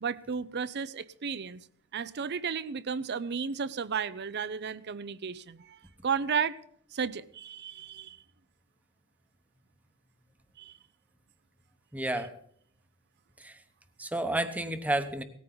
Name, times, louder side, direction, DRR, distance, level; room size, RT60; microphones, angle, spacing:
voice 1, 0.0-1.6 1.9-6.6 6.9-8.2 10.6-10.7, right 6 dB, 50° right, 0.6 m, -33 dB
voice 2, 11.9-12.3 13.4-13.6 14.0-15.2, right 1 dB, 5° right, 1.0 m, -31 dB
18.5 x 14.0 x 3.9 m
head